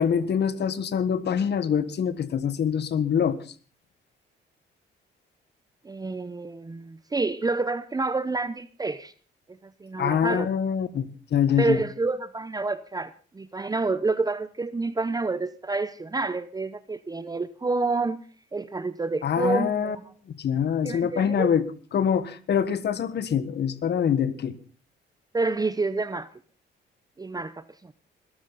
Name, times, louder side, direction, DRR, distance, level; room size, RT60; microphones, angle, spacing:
voice 1, 0.0-3.4 10.0-11.8 19.2-20.0 20.4-21.6 21.9-24.5, left 8 dB, 60° left, 14 dB, 1.5 m, -24 dB
voice 2, 5.8-9.1 9.6-10.5 11.6-18.2 18.5-20.0 20.8-21.5 25.3-26.3 27.2-27.9, right 3 dB, 20° right, 14 dB, 0.8 m, -28 dB
21.0 x 13.0 x 4.1 m, 0.39 s
cardioid pair, 90°, 20 cm